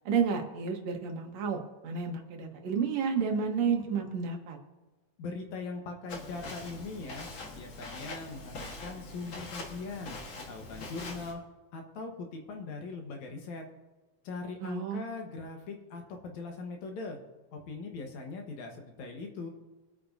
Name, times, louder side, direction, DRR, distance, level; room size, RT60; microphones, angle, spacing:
voice 1, 0.1-4.6 14.6-15.0, right 6 dB, 65° right, 2 dB, 2.4 m, -31 dB
voice 2, 5.2-10.2 10.5-11.4 11.7-13.6 14.3-17.2 17.5-19.5, left 3 dB, 70° left, 3 dB, 2.5 m, -40 dB
Walk footsteps, 6.1-11.3, left 2 dB, 50° left, 2.0 m, -43 dB
24.0 x 8.6 x 2.7 m, 1.2 s
omnidirectional pair, 3.5 m